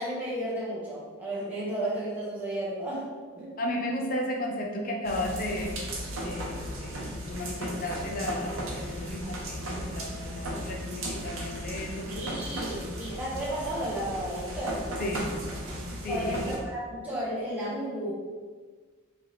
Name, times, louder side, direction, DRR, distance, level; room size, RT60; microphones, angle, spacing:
voice 1, 0.0-3.1 3.4-3.5 12.1-14.9 16.1-18.1, right 1 dB, 10° right, -9 dB, 0.8 m, -33 dB
voice 2, 3.6-5.8 6.2-12.1 15.0-15.3 16.0-16.4, left 1 dB, 40° left, 0 dB, 0.5 m, -34 dB
sound 1, 5.0-16.6, equal, 75° right, 0.8 m, -36 dB
4.4 x 2.8 x 3.1 m, 1.4 s
head